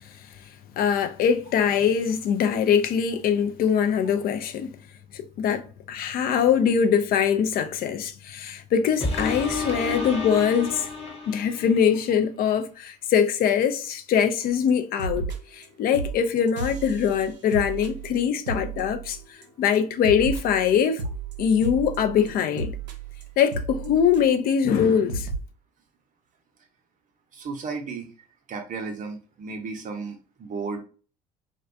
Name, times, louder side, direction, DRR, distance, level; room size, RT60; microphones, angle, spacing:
voice 1, 0.8-4.7 5.1-10.9 11.3-15.3 15.8-19.2 19.6-21.0 21.4-22.8 23.4-25.3, left 7 dB, 45° left, 0.4 m, -22 dB
sound 1, 9.0-11.9 12.5-12.6, left 3 dB, 30° left, 0.8 m, -31 dB
sound 2, 14.7-14.8 15.0-15.7 15.9-19.4 19.7-24.5 24.8-24.9 25.1-25.4, right 3 dB, 90° right, 0.5 m, -33 dB
voice 2, 27.3-28.1 28.5-30.8, right 4 dB, 40° right, 0.6 m, -34 dB
2.4 x 2.1 x 2.5 m
hypercardioid pair, 60°, 21 cm